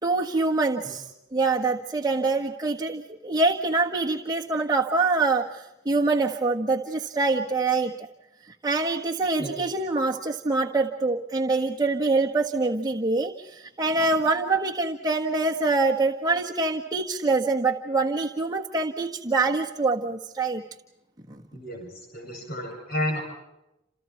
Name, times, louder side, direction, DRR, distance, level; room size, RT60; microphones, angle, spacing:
voice 1, 0.0-1.1 1.3-8.1 8.6-20.6 21.3-21.4, right 3 dB, 20° right, -1 dB, 1.5 m, -25 dB
voice 2, 21.5-23.2, left 1 dB, 55° left, 1 dB, 7.8 m, -32 dB
29.0 x 28.5 x 4.6 m, 0.92 s
head